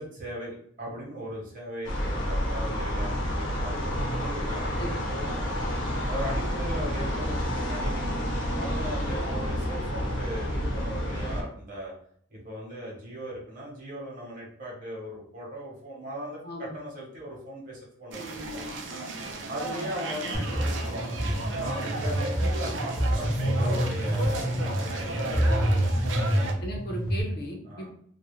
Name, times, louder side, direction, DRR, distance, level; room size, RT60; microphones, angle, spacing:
voice 1, 0.0-5.4 6.0-8.1 8.5-11.9 12.3-18.6 19.5-21.2 21.6-25.9 27.6-27.9, equal, 45° right, -4 dB, 0.8 m, -38 dB
sound 1, 1.8-11.4, equal, 80° left, 0.8 m, -29 dB
sound 2, 18.1-26.5, right 2 dB, 75° right, 0.5 m, -35 dB
sound 3, 20.3-27.2, equal, 5° right, 0.5 m, -27 dB
voice 2, 26.6-27.9, equal, 55° left, 0 dB, 0.5 m, -37 dB
2.3 x 2.0 x 2.9 m, 0.64 s
head